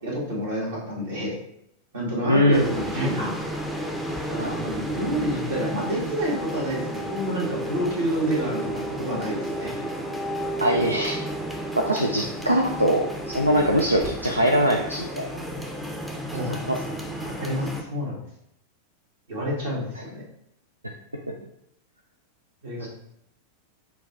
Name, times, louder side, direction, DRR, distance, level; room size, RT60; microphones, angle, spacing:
voice 1, 0.0-1.4 1.9-3.3 4.3-9.7 16.3-16.6 17.1-18.2 19.3-20.2 22.6-22.9, equal, 60° right, -4 dB, 1.4 m, -28 dB
voice 2, 2.3-2.6 4.4-4.6 10.6-11.2 11.7-15.3 16.5-16.8 20.8-20.9 22.8-22.9, equal, 85° right, 1 dB, 0.3 m, -22 dB
sound 1, 2.5-17.8, right 1 dB, 5° right, 0.5 m, -32 dB
6.2 x 2.3 x 2.7 m, 0.76 s
figure-of-eight pair, 90°, 0 cm